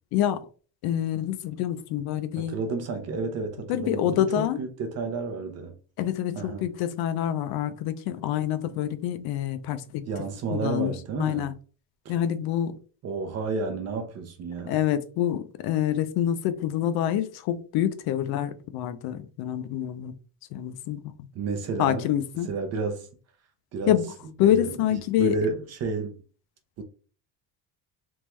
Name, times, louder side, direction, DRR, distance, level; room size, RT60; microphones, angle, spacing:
voice 1, 0.1-0.5 0.8-2.6 3.7-4.6 6.0-10.0 10.5-11.5 12.1-12.8 14.7-20.1 20.5-21.0 21.8-22.5 23.9-24.1 24.4-25.5, left 11 dB, 60° left, 0.5 m, -26 dB
voice 2, 2.4-5.8 6.4-6.7 10.1-11.5 12.0-12.2 13.0-14.8 21.3-22.1 22.5-23.1 23.7-24.0 24.4-24.8 25.2-26.2 26.8-26.9, right 4 dB, 35° right, 0.6 m, -31 dB
3.5 x 3.1 x 3.0 m
cardioid pair, 175°, 43 cm